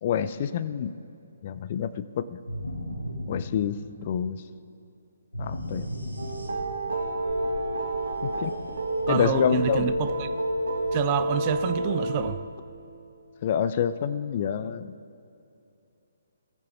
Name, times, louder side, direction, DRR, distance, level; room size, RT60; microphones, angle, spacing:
voice 1, 0.0-0.9 1.4-2.4 3.3-4.4 5.4-5.9 8.2-8.5 9.1-9.9 13.4-14.9, left 8 dB, 35° left, 0.4 m, -27 dB
sound 1, 2.5-4.2 5.3-7.0, left 1 dB, 85° left, 1.4 m, -35 dB
sound 2, 6.2-12.3, right 1 dB, 60° right, 1.2 m, -29 dB
voice 2, 9.1-10.3 10.9-12.4, right 11 dB, 30° right, 0.4 m, -28 dB
19.5 x 7.6 x 3.1 m
figure-of-eight pair, 135°, 0 cm